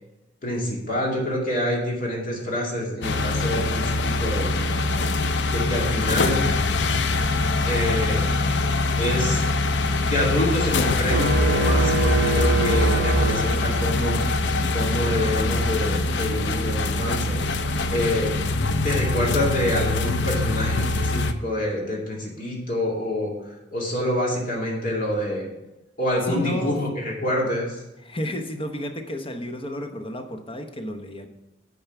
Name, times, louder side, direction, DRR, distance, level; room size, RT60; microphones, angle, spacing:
voice 1, 0.4-4.8 5.5-6.5 7.6-8.4 9.0-9.5 10.0-14.2 14.7-17.4 17.9-25.5 26.0-27.8, left 1 dB, 50° left, -2 dB, 2.3 m, -27 dB
sound 1, 3.0-21.3, left 2 dB, 70° left, 0.5 m, -24 dB
sound 2, 11.1-14.1, right 2 dB, 65° right, 0.7 m, -23 dB
voice 2, 26.3-26.8 28.0-31.3, left 1 dB, 30° left, 5 dB, 0.9 m, -31 dB
8.9 x 4.7 x 5.9 m, 0.96 s
head